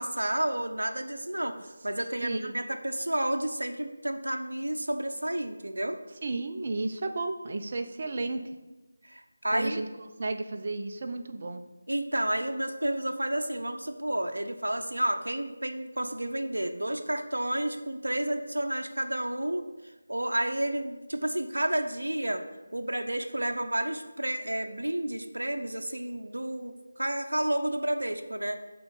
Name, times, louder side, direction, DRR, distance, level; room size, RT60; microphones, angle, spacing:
voice 1, 0.0-1.6 1.8-6.0 9.0-9.8 11.9-19.6 20.1-22.4 22.7-28.6, right 1 dB, 70° right, 5 dB, 0.7 m, -31 dB
voice 2, 2.2-2.5 6.2-8.4 9.5-9.9 10.2-11.6, right 2 dB, 35° right, 6 dB, 0.6 m, -32 dB
8.1 x 3.8 x 5.3 m, 1.1 s
figure-of-eight pair, 160°, 0 cm